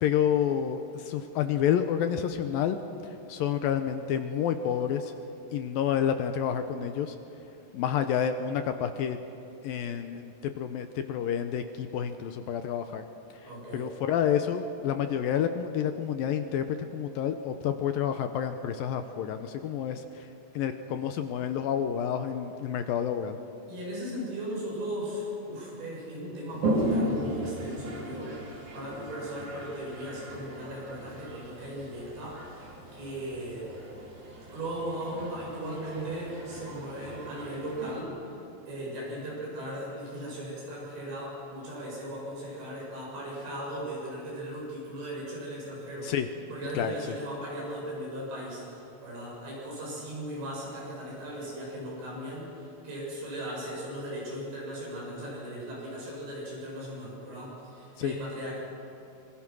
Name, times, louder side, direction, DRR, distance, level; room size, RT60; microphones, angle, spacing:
voice 1, 0.0-2.8 3.0-5.1 5.5-7.2 7.7-9.2 9.6-13.0 13.7-16.7 16.9-20.3 20.6-23.4 46.0-46.3 46.7-47.2 58.0-58.1, left 9 dB, 75° left, 8 dB, 2.2 m, -29 dB
voice 2, 13.4-13.9 23.7-28.4 28.7-33.7 34.5-38.1 38.7-46.2 46.5-58.6, right 1 dB, 85° right, -4 dB, 10.0 m, -37 dB
Toilet flush, 26.5-38.0, right 1 dB, 55° right, 5.6 m, -36 dB
25.5 x 25.5 x 6.2 m, 2.9 s
omnidirectional pair, 4.9 m